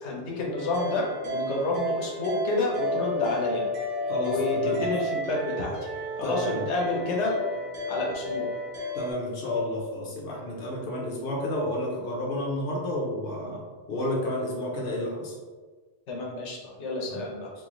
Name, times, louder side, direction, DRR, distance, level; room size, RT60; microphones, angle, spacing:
voice 1, 0.0-3.6 4.2-5.7 6.2-7.3 7.9-8.5 16.1-17.5, left 2 dB, 80° left, -2 dB, 1.2 m, -29 dB
sound 1, 0.5-9.1, left 1 dB, 55° right, 0.9 m, -32 dB
voice 2, 4.1-4.9 6.2-6.7 8.9-13.6 13.9-15.3 17.1-17.2, left 1 dB, 60° left, -2 dB, 0.9 m, -31 dB
3.1 x 2.6 x 3.8 m, 1.4 s
omnidirectional pair, 1.1 m